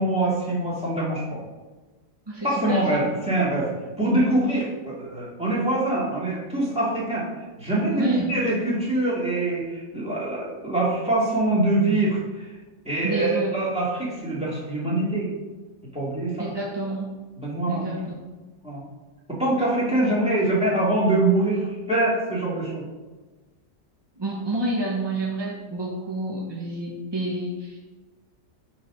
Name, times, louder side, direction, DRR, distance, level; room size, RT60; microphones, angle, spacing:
voice 1, 0.0-1.4 2.4-3.7 4.0-7.3 7.6-12.5 12.8-15.3 15.9-16.5 17.4-17.9 18.6-18.8 19.3-22.8, right 2 dB, 5° right, -6 dB, 2.1 m, -24 dB
voice 2, 2.3-3.0 7.9-8.3 13.0-13.6 16.4-17.1 17.7-18.1 24.2-27.8, right 1 dB, 25° right, -3 dB, 0.6 m, -28 dB
5.8 x 4.9 x 6.2 m, 1.2 s
omnidirectional pair, 1.8 m